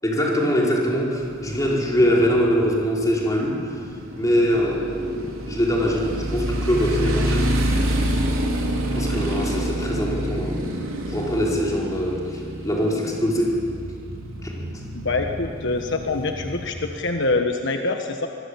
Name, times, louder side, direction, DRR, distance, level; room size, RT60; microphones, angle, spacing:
voice 1, 0.0-3.8 4.2-7.5 8.9-10.8 11.1-13.6 14.4-14.7, equal, 15° left, -3 dB, 5.1 m, -23 dB
Motorcycle, 1.2-17.0, right 1 dB, 85° right, 4.8 m, -28 dB
voice 2, 14.9-18.3, left 3 dB, 60° left, 4 dB, 1.4 m, -25 dB
25.5 x 21.5 x 8.6 m, 2.3 s
head